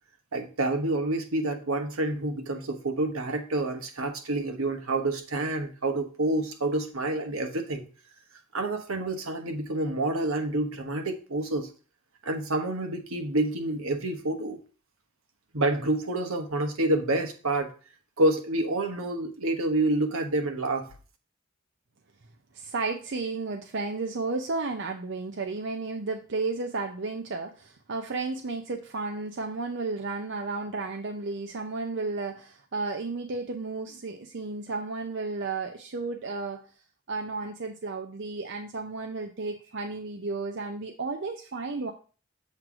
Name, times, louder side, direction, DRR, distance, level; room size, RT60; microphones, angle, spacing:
voice 1, 0.3-7.9 8.5-11.7 12.2-14.6 15.5-17.7 18.2-20.8, right 2 dB, 80° right, 6 dB, 1.2 m, -28 dB
voice 2, 22.5-36.6 37.1-41.9, right 3 dB, 55° right, 4 dB, 0.6 m, -33 dB
7.5 x 3.2 x 6.1 m, 0.37 s
head